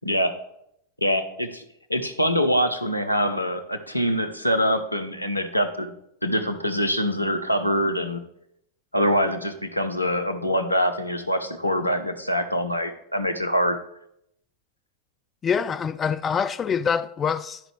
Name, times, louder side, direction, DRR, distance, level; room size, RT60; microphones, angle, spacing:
voice 1, 0.0-0.3 1.0-1.6 1.9-5.9 6.2-8.2 8.9-13.8, equal, 85° left, 0.7 m, -24 dB
voice 2, 15.4-17.6, left 6 dB, 20° left, 0.3 m, -25 dB
12.0 x 5.0 x 3.2 m
figure-of-eight pair, 90°, 0 cm